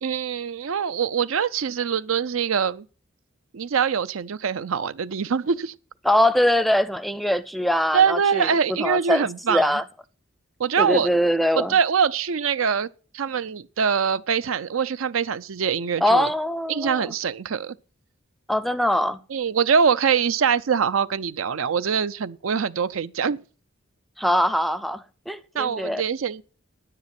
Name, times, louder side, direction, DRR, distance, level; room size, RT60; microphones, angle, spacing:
voice 1, 0.0-2.9 3.5-5.7 7.9-9.8 10.6-11.1 11.6-16.3 16.7-17.8 19.3-23.4 25.6-26.4, right 6 dB, 85° right, 0.5 m, -23 dB
voice 2, 6.0-9.8 10.8-11.7 16.0-17.1 18.5-19.2 24.2-26.0, left 1 dB, ahead, 0.5 m, -22 dB
10.0 x 9.6 x 5.9 m
head